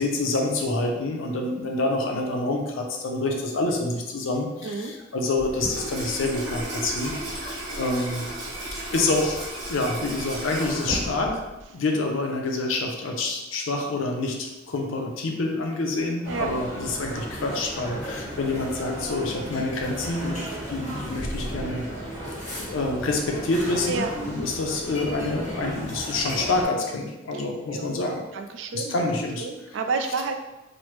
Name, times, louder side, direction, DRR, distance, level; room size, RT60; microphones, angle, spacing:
voice 1, 0.0-8.3 8.9-20.4 20.7-21.8 22.7-28.2 28.7-29.5, left 2 dB, 80° left, 1 dB, 0.5 m, -27 dB
Water tap faucet / Sink (filling or washing), 5.4-11.6, right 1 dB, 85° right, 1.1 m, -33 dB
sound 1, 16.2-26.7, equal, 40° left, 0.9 m, -35 dB
voice 2, 28.3-29.1 29.4-30.3, right 4 dB, 70° right, 6 dB, 0.3 m, -30 dB
3.1 x 2.0 x 3.0 m, 1.0 s
head